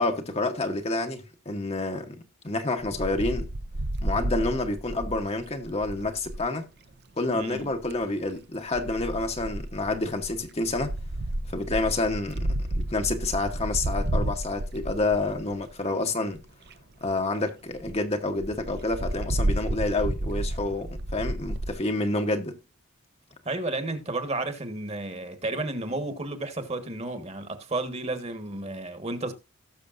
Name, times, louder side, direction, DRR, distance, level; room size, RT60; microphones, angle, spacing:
voice 1, 0.0-2.2 2.4-3.5 4.0-6.6 7.2-10.9 11.5-12.5 12.7-16.4 17.0-22.6, left 2 dB, 25° left, 1.0 m, -28 dB
Wind, 2.8-6.5 7.6-8.0 8.7-15.7 16.3-16.4 16.7-16.8 17.1-17.2 17.5-17.6 17.8-17.9 18.4-21.7, right 1 dB, 45° right, 0.7 m, -31 dB
voice 2, 7.3-7.7 23.4-29.3, right 2 dB, 30° right, 1.4 m, -32 dB
18.0 x 6.7 x 2.5 m
head